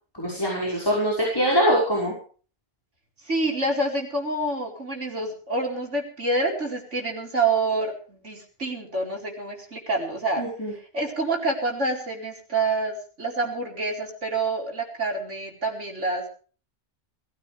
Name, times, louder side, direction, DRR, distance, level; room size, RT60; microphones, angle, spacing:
voice 1, 0.2-2.1 10.4-10.7, equal, 20° left, -4 dB, 5.4 m, -23 dB
voice 2, 3.3-10.4 10.9-16.3, right 2 dB, 85° right, 1 dB, 4.8 m, -27 dB
21.0 x 16.0 x 3.4 m, 0.40 s
omnidirectional pair, 1.2 m